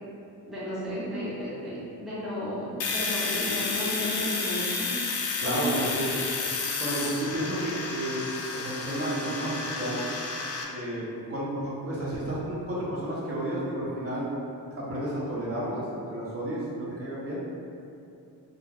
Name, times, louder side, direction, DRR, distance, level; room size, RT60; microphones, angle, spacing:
voice 1, 0.5-6.0 6.7-6.8, equal, ahead, -10 dB, 0.6 m, -34 dB
Domestic sounds home sounds, 2.8-10.6, left 4 dB, 45° left, 0.4 m, -31 dB
voice 2, 5.4-6.1 6.8-8.2 8.5-10.0 10.7-14.3 14.8-17.4, right 1 dB, 35° right, -7 dB, 0.7 m, -31 dB
2.3 x 2.2 x 3.3 m, 2.6 s
cardioid pair, 100°, 38 cm